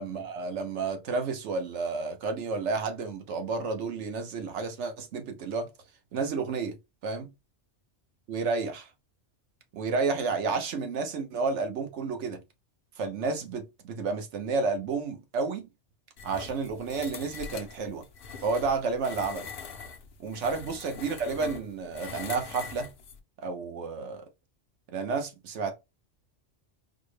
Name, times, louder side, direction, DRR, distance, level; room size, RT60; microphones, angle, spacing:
voice 1, 0.0-5.7 6.1-6.8 7.0-7.3 8.3-8.9 9.7-12.4 13.0-15.7 16.2-18.0 18.4-19.5 20.2-22.9 23.4-24.2 24.9-25.7, right 4 dB, 70° right, 1.1 m, -31 dB
sound 1, 16.2-23.2, left 5 dB, 55° left, 0.7 m, -43 dB
4.1 x 2.1 x 3.2 m
omnidirectional pair, 1.3 m